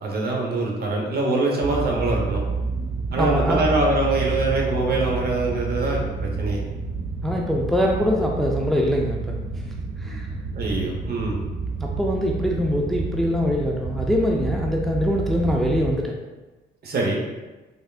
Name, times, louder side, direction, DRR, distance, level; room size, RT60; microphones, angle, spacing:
voice 1, 0.0-2.4 3.1-6.6 10.5-11.4 16.8-17.2, right 2 dB, 50° right, -1 dB, 0.9 m, -24 dB
sound 1, 1.6-15.9, right 4 dB, 75° right, 0.6 m, -29 dB
voice 2, 3.2-3.8 7.2-9.4 10.0-10.3 11.8-16.2, equal, ahead, -1 dB, 0.4 m, -23 dB
3.6 x 3.3 x 2.4 m, 1.2 s
cardioid pair, 90°, 20 cm